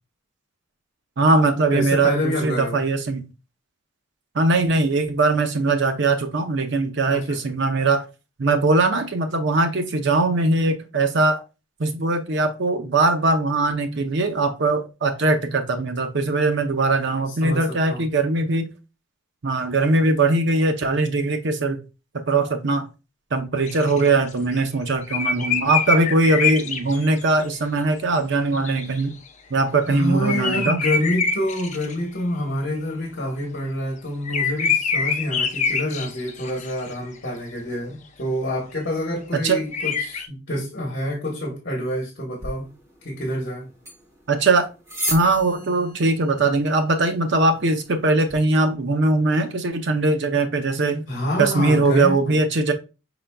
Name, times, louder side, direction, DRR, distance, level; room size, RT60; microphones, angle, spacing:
voice 1, 1.2-3.3 4.3-8.0 8.4-11.4 11.8-18.7 19.4-21.8 22.3-22.9 23.3-29.1 29.5-30.8 39.3-39.6 44.3-44.7 45.1-51.0 51.4-52.7, right 3 dB, 55° right, 0.6 m, -21 dB
voice 2, 1.7-2.8 7.1-7.4 17.3-18.0 29.9-42.7 43.0-43.7 51.1-52.4, left 1 dB, 50° left, 1.1 m, -27 dB
sound 1, 23.6-24.6 25.0-27.4 28.5-29.3 29.9-30.0 30.2-32.2 34.2-37.1 39.7-40.3, left 5 dB, 35° left, 0.4 m, -25 dB
sound 2, 42.4-48.4, equal, 15° right, 1.0 m, -36 dB
5.6 x 3.9 x 2.2 m
head